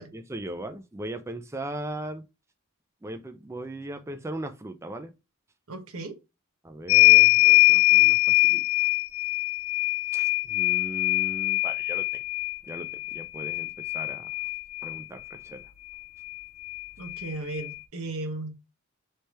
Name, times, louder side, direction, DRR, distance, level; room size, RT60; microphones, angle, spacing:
voice 1, 0.1-2.2 3.0-5.1 6.6-8.6 10.1-12.2 12.7-14.3 14.8-15.6, right 1 dB, 15° right, 0.4 m, -38 dB
voice 2, 5.7-6.2 17.0-18.6, right 2 dB, 90° right, 1.0 m, -35 dB
sound 1, 6.9-15.0 16.3-16.4 16.7-17.7, left 23 dB, 75° left, 0.4 m, -22 dB
3.3 x 3.3 x 4.2 m
head